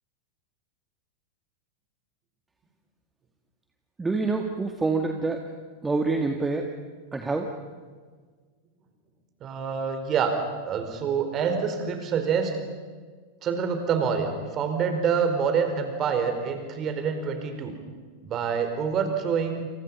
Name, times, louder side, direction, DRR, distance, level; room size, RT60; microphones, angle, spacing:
voice 1, 4.0-5.5 5.8-6.7 7.1-7.5, right 3 dB, 10° right, 4 dB, 2.0 m, -26 dB
voice 2, 9.4-10.4 10.6-12.5 13.4-17.7 18.2-19.7, right 6 dB, 30° right, 6 dB, 4.6 m, -26 dB
29.5 x 28.5 x 5.6 m, 1.5 s
figure-of-eight pair, 90°, 0 cm